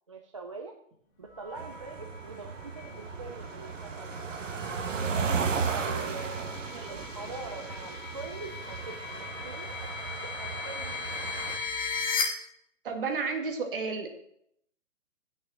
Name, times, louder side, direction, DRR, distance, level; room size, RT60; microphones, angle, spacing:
voice 1, 0.1-0.8 1.2-4.3 5.7-11.3, right 4 dB, 25° right, 3 dB, 0.5 m, -44 dB
sound 1, 1.3-12.2, left 6 dB, 20° left, 1.4 m, -39 dB
sound 2, 1.6-11.6, right 5 dB, 75° right, 1.6 m, -35 dB
voice 2, 12.8-14.2, right 4 dB, 45° right, 5 dB, 2.0 m, -32 dB
9.2 x 6.4 x 7.4 m, 0.72 s
hypercardioid pair, 165°, 39 cm